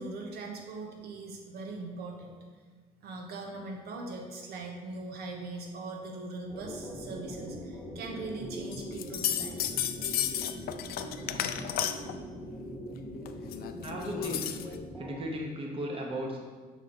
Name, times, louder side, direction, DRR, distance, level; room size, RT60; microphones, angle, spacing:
voice 1, 0.0-2.3 3.0-9.8, right 3 dB, 70° right, 2 dB, 1.1 m, -40 dB
sound 1, 6.5-15.2, equal, 10° left, 1.3 m, -42 dB
foley - fiddley bits, 8.7-12.2 13.3-14.8, left 10 dB, 65° left, 0.4 m, -33 dB
voice 2, 13.8-14.5 15.0-16.4, equal, 35° right, -1 dB, 1.0 m, -36 dB
6.1 x 4.0 x 4.2 m, 1.5 s
cardioid pair, 110°, 17 cm